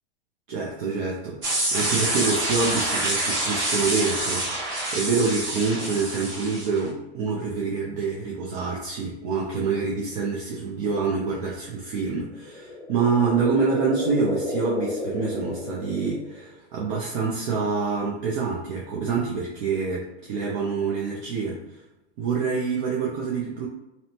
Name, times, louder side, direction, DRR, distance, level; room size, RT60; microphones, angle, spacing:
voice 1, 0.5-21.8 22.2-23.7, right 4 dB, 50° right, -3 dB, 0.6 m, -26 dB
sound 1, 1.4-6.8, right 1 dB, 30° right, 1.1 m, -26 dB
sound 2, 12.3-16.5, left 2 dB, 20° left, 0.3 m, -32 dB
2.7 x 2.1 x 2.8 m, 0.95 s
hypercardioid pair, 135°, 34 cm